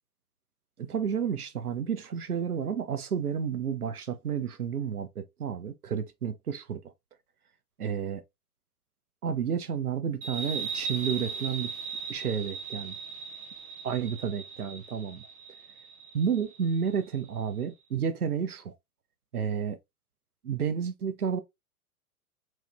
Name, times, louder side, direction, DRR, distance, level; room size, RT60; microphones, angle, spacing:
voice 1, 0.8-6.8 7.8-8.2 9.2-11.7 12.1-12.9 13.8-15.3 16.1-18.7 19.3-19.8 20.4-21.4, right 7 dB, 90° right, 0.6 m, -31 dB
sound 1, 10.2-17.4, right 5 dB, 20° right, 0.6 m, -38 dB
3.5 x 3.0 x 2.3 m
figure-of-eight pair, 110°, 43 cm